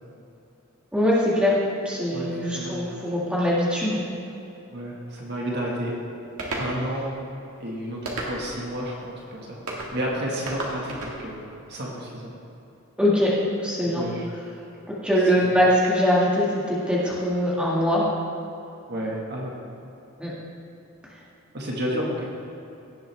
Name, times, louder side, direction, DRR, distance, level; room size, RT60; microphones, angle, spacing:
voice 1, 0.9-1.5 1.9-4.0 13.0-13.3 13.6-14.0 14.9-18.0 20.2-20.3, equal, 5° right, -6 dB, 1.9 m, -22 dB
voice 2, 2.1-2.7 4.7-6.0 6.6-7.2 7.6-11.4 11.7-12.4 13.9-14.3 15.2-15.5 18.9-19.5 21.5-22.2, equal, 50° right, -3 dB, 1.7 m, -31 dB
sound 1, 6.4-6.7 8.1-8.6 9.7-9.9 10.5-11.2, right 2 dB, 80° right, 1.9 m, -31 dB
17.0 x 7.8 x 3.4 m, 2.9 s
head